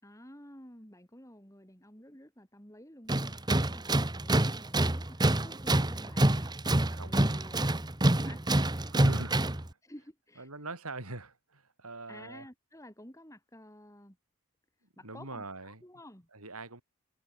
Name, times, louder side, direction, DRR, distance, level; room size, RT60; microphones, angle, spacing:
voice 1, 0.0-7.8 8.1-8.4 8.7-9.3 9.8-10.5 12.1-14.2 15.0-16.3, left 1 dB, 15° left, 7.6 m, -52 dB
Tools, 3.1-9.7, right 1 dB, 20° right, 1.3 m, -27 dB
voice 2, 8.9-9.4 10.4-12.5 15.0-15.8 16.3-16.8, right 2 dB, 85° right, 5.9 m, -42 dB
head